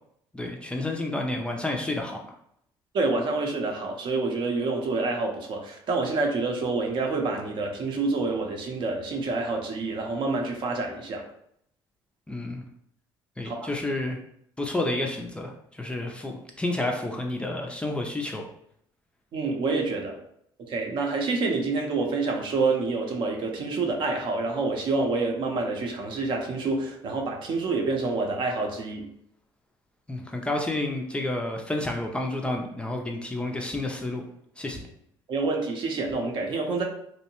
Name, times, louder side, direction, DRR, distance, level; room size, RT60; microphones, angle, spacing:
voice 1, 0.3-2.2 12.3-12.6 13.4-14.2 14.6-18.5 30.1-34.2 34.6-34.9, left 2 dB, 10° left, 1 dB, 0.3 m, -30 dB
voice 2, 2.9-11.2 13.4-13.7 19.3-20.1 20.6-29.1 35.3-36.8, right 3 dB, 55° right, 1 dB, 0.6 m, -27 dB
2.7 x 2.1 x 2.8 m, 0.71 s
cardioid pair, 110°, 10 cm